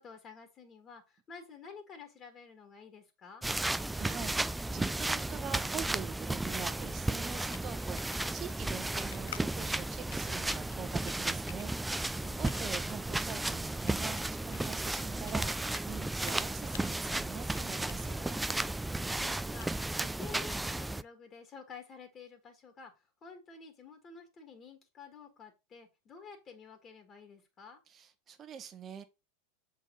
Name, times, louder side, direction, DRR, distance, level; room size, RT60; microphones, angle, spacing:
voice 1, 0.0-3.4 12.2-12.5 18.9-22.9 23.2-27.8, left 5 dB, 30° left, 1.8 m, -51 dB
sound 1, 3.4-21.0, right 2 dB, 5° right, 0.3 m, -34 dB
voice 2, 3.9-18.4 27.9-29.0, right 8 dB, 30° right, 1.1 m, -44 dB
sound 2, 7.5-20.2, left 12 dB, 65° left, 0.4 m, -53 dB
7.0 x 4.3 x 3.9 m
hypercardioid pair, 90°, 0 cm